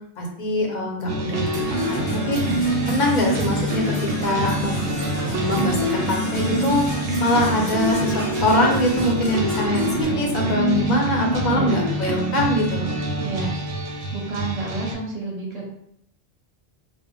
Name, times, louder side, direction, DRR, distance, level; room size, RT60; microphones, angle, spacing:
voice 1, 0.2-2.0 2.3-2.4 2.9-4.8 5.2-12.9, left 1 dB, 50° left, -1 dB, 0.7 m, -23 dB
sound 1, 1.1-14.9, right 1 dB, 90° right, 0.8 m, -25 dB
Percussion / Brass instrument, 1.5-10.0, left 1 dB, 10° left, 0.8 m, -34 dB
sound 2, 2.2-10.6, left 1 dB, 90° left, 0.9 m, -35 dB
voice 2, 13.2-13.5 13.8-15.7, right 3 dB, 40° right, -2 dB, 0.7 m, -30 dB
2.0 x 2.0 x 3.7 m, 0.71 s
omnidirectional pair, 1.1 m